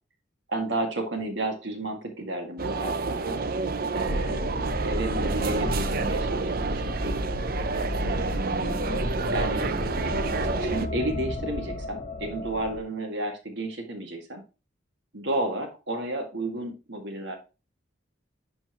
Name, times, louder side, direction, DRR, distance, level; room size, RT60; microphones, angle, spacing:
voice 1, 0.5-3.4 3.9-4.6 4.8-7.2 8.1-8.9 9.3-9.7 10.5-14.4 15.1-17.4, right 1 dB, 65° right, 3 dB, 2.0 m, -32 dB
sound 1, 2.6-10.9, right 4 dB, 50° right, 0.6 m, -29 dB
sound 2, 4.1-12.8, left 1 dB, 40° left, 1.2 m, -32 dB
11.0 x 4.4 x 3.0 m, 0.31 s
head